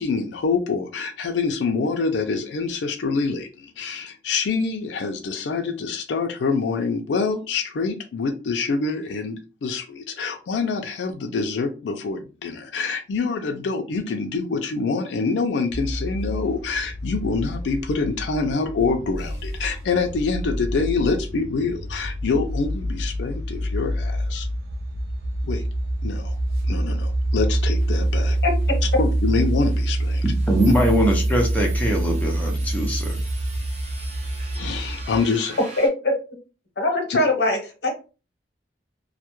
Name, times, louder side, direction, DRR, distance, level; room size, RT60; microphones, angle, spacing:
voice 1, 0.0-24.5 25.4-25.6 26.0-26.4 26.7-28.4 29.0-30.2 30.7-30.8 34.5-35.6, left 4 dB, 90° left, 0.4 m, -26 dB
sound 1, 15.7-35.2, right 1 dB, 65° right, 0.4 m, -26 dB
sound 2, 27.6-35.9, right 2 dB, 40° right, 0.7 m, -42 dB
voice 2, 28.4-28.8 35.8-36.1 36.8-37.9, left 2 dB, 70° left, 0.8 m, -22 dB
voice 3, 30.2-33.0, equal, 10° left, 0.5 m, -22 dB
2.2 x 2.0 x 2.9 m
head